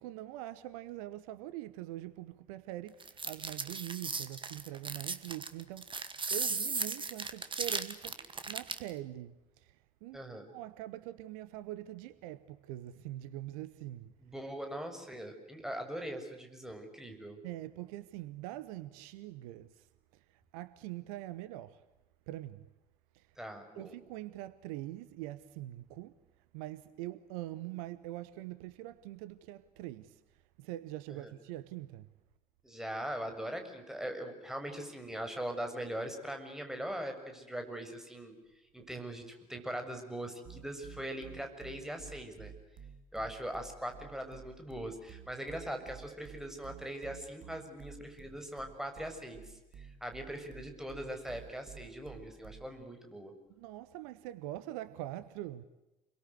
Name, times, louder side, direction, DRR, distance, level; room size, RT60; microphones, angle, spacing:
voice 1, 0.0-10.2 10.5-14.1 17.4-19.9 20.1-21.8 22.3-22.7 23.1-23.3 23.7-26.2 26.5-32.1 53.5-55.7, right 15 dB, 65° right, 1.0 m, -44 dB
sound 1, 3.0-8.9, right 4 dB, 25° right, 2.2 m, -36 dB
voice 2, 10.1-10.5 14.2-17.4 23.4-23.9 31.2-31.3 32.6-38.3 38.7-42.5 43.1-53.3, right 1 dB, ahead, 7.0 m, -41 dB
sound 2, 40.4-52.8, right 8 dB, 45° right, 2.0 m, -52 dB
29.5 x 23.0 x 8.1 m
figure-of-eight pair, 55°, 20 cm